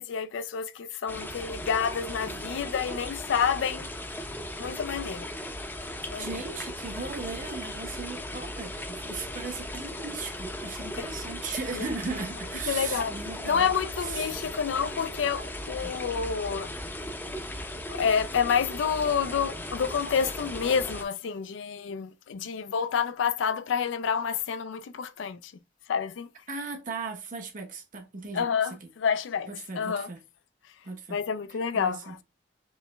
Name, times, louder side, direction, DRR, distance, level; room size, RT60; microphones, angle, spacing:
voice 1, 0.0-3.9 4.6-5.3 6.1-6.3 11.0-11.1 11.8-11.9 12.7-13.2 13.4-16.7 17.9-25.5 25.9-26.3 28.3-29.5 29.8-30.1 31.1-32.2, left 7 dB, 85° left, 0.4 m, -28 dB
sound 1, 1.1-21.0, left 1 dB, 10° left, 0.6 m, -37 dB
voice 2, 6.2-13.7 14.0-14.4 15.8-15.9 22.4-22.6 26.5-28.9 29.5-30.2 30.8-31.2 31.7-32.1, right 4 dB, 45° right, 0.9 m, -37 dB
5.3 x 3.0 x 2.2 m
head